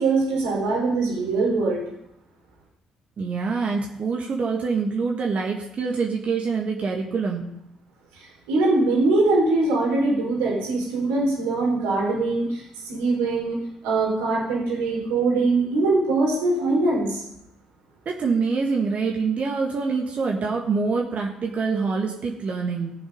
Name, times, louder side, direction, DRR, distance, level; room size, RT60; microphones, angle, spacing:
voice 1, 0.0-1.8 8.1-13.6 13.8-17.2, right 3 dB, 75° right, -2 dB, 3.9 m, -22 dB
voice 2, 3.2-7.5 18.0-22.9, right 4 dB, 45° right, 0 dB, 1.8 m, -25 dB
18.0 x 7.2 x 5.4 m, 0.79 s
figure-of-eight pair, 45°, 3 cm